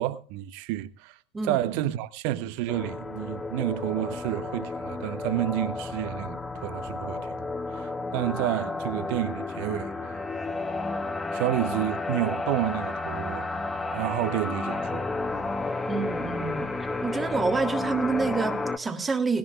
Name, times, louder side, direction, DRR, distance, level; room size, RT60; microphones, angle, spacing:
voice 1, 0.0-1.2 1.4-7.4 7.7-10.3 11.3-13.5 13.9-15.1, right 14 dB, 45° right, 1.0 m, -30 dB
voice 2, 1.3-1.9 15.9-16.7 17.0-19.4, right 4 dB, 15° right, 1.7 m, -28 dB
sound 1, 2.7-18.8, left 3 dB, 10° left, 1.1 m, -32 dB
19.5 x 15.0 x 2.4 m
figure-of-eight pair, 90°, 0 cm